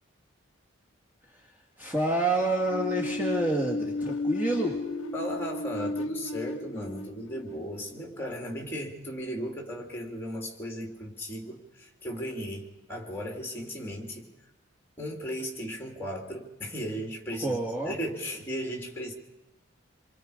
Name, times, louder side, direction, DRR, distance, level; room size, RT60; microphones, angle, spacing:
voice 1, 1.2-4.8 17.4-17.9, right 1 dB, 10° right, -2 dB, 2.1 m, -28 dB
sound 1, 2.7-8.4, left 2 dB, 80° left, 0.7 m, -34 dB
voice 2, 5.1-14.3 15.0-19.1, equal, 10° left, 1 dB, 3.4 m, -36 dB
28.0 x 23.0 x 5.2 m, 1.0 s
head